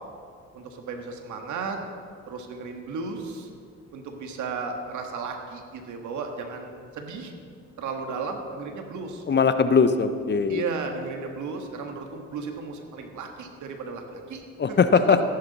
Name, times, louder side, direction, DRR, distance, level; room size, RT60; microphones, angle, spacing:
voice 1, 0.5-1.8 2.3-3.5 3.9-7.3 7.8-9.6 10.5-14.4 14.7-14.8, right 4 dB, 75° right, 4 dB, 1.6 m, -34 dB
voice 2, 9.3-10.7 14.6-15.2, left 5 dB, 35° left, 10 dB, 0.7 m, -20 dB
14.0 x 11.0 x 4.1 m, 2.2 s
cardioid pair, 90°, 30 cm